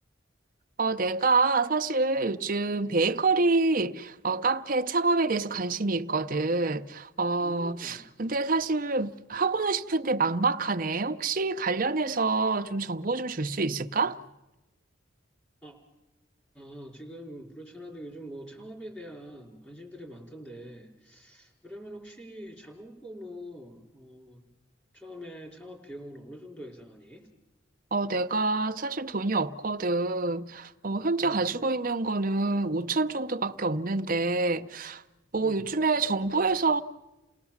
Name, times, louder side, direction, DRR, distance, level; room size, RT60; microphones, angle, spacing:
voice 1, 0.8-14.2 27.9-35.0 35.3-36.8, right 3 dB, 45° right, 0.8 m, -27 dB
voice 2, 7.4-8.0 15.6-15.8 16.5-24.4 24.9-27.3 31.2-31.5 35.4-35.7, equal, 5° left, 4.2 m, -44 dB
29.5 x 18.5 x 7.3 m
head